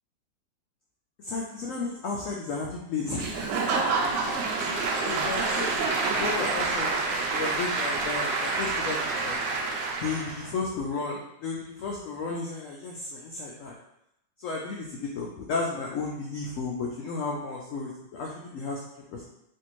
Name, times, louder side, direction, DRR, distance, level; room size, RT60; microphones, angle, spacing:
voice 1, 1.2-3.3 4.2-9.0 9.2-9.4 10.0-13.7 14.4-18.8 19.1-19.3, left 4 dB, 85° left, -2 dB, 0.7 m, -33 dB
Applause / Crowd, 3.2-10.5, right 3 dB, 80° right, 1.2 m, -28 dB
3.3 x 2.6 x 2.9 m, 0.80 s
omnidirectional pair, 1.9 m